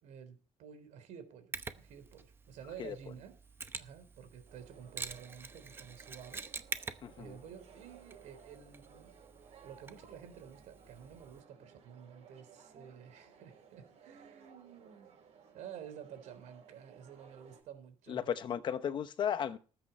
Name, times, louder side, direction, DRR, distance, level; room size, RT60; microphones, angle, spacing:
voice 1, 0.0-3.4 3.8-9.1 9.6-15.1 15.5-18.2, right 8 dB, 75° right, 3.5 m, -51 dB
Mechanisms, 1.5-11.4, right 4 dB, 20° right, 0.8 m, -47 dB
sound 1, 4.5-17.6, right 6 dB, 60° right, 6.1 m, -59 dB
voice 2, 7.0-7.3 18.1-19.6, left 8 dB, 40° left, 0.9 m, -35 dB
19.0 x 8.7 x 4.4 m
cardioid pair, 175°, 12 cm